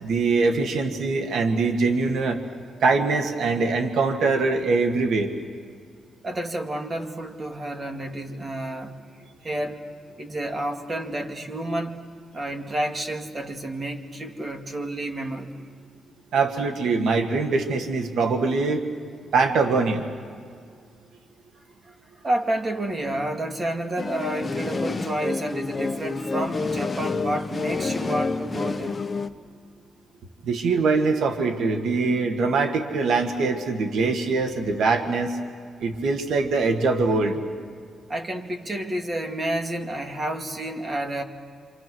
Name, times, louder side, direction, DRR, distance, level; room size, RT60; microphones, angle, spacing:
voice 1, 0.0-2.4 2.8-5.3 16.3-18.8 19.3-20.0 30.4-35.4 35.8-37.4, right 4 dB, 80° right, 5 dB, 2.0 m, -23 dB
voice 2, 6.2-9.0 9.4-9.8 10.2-15.6 22.2-29.0 38.1-41.2, right 1 dB, 35° right, 4 dB, 2.3 m, -30 dB
sound 1, 24.0-29.3, left 4 dB, 25° left, 1.2 m, -28 dB
27.5 x 27.0 x 6.3 m, 2.1 s
cardioid pair, 95°, 0 cm